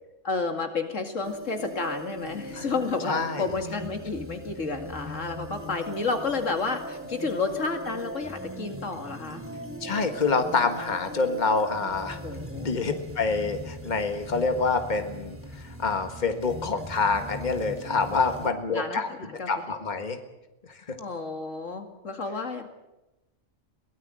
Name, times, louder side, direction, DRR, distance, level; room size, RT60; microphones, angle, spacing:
voice 1, 0.2-9.4 12.2-12.7 18.7-19.5 21.0-22.7, left 4 dB, 85° left, 5 dB, 2.6 m, -31 dB
sound 1, 1.2-18.5, equal, 10° right, 2.4 m, -39 dB
voice 2, 3.1-3.5 9.8-12.2 12.6-19.1 19.5-20.2 20.7-21.0, left 4 dB, 40° left, 7 dB, 1.7 m, -27 dB
23.0 x 18.0 x 7.7 m, 0.99 s
omnidirectional pair, 1.3 m